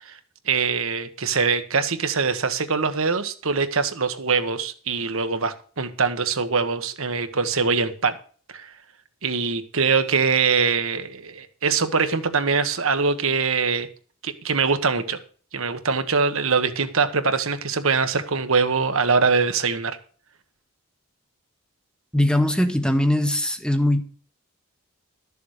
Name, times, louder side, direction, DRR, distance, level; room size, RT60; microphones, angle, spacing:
voice 1, 0.5-8.1 8.5-8.7 9.2-13.9 14.2-15.2 15.5-20.0, right 5 dB, 70° right, 1.2 m, -23 dB
voice 2, 22.1-24.0, left 1 dB, 5° left, 0.8 m, -20 dB
13.0 x 7.0 x 6.5 m
head